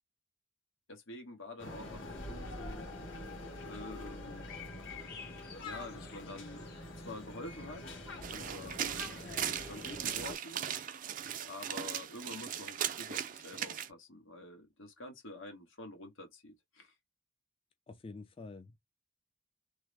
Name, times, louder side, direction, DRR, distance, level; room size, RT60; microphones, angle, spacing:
voice 1, 0.9-2.9 3.6-4.5 5.6-6.7 7.0-8.0 8.3-9.2 9.6-10.6 11.4-16.9, left 1 dB, 85° left, 1.4 m, -48 dB
sound 1, 1.6-10.3, left 2 dB, 70° left, 1.7 m, -45 dB
sound 2, 4.3-7.8, left 7 dB, 50° left, 0.9 m, -52 dB
sound 3, 8.2-13.9, right 9 dB, 40° right, 0.4 m, -38 dB
voice 2, 17.9-18.8, left 3 dB, 25° left, 0.4 m, -47 dB
3.4 x 2.1 x 3.2 m
head